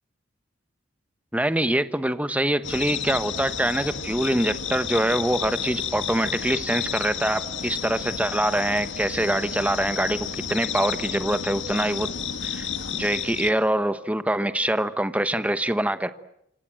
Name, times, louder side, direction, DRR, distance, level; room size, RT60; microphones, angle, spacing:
voice 1, 1.3-12.1 12.4-12.7 12.9-16.1, right 1 dB, 10° right, 11 dB, 1.1 m, -24 dB
sound 1, 2.6-13.5, left 7 dB, 70° left, 1.9 m, -32 dB
28.0 x 26.0 x 7.6 m, 0.77 s
head